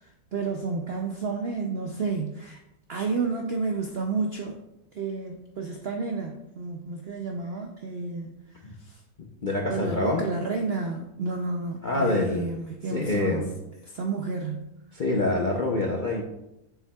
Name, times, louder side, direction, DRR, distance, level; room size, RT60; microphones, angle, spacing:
voice 1, 0.3-2.6 2.9-4.6 4.9-8.4 9.7-13.4 13.9-14.6, right 4 dB, 70° right, 3 dB, 0.5 m, -30 dB
voice 2, 9.4-10.2 11.8-12.5 12.8-13.5 14.9-16.2, left 2 dB, 55° left, 0 dB, 0.5 m, -26 dB
7.0 x 7.0 x 2.3 m, 0.88 s
omnidirectional pair, 1.8 m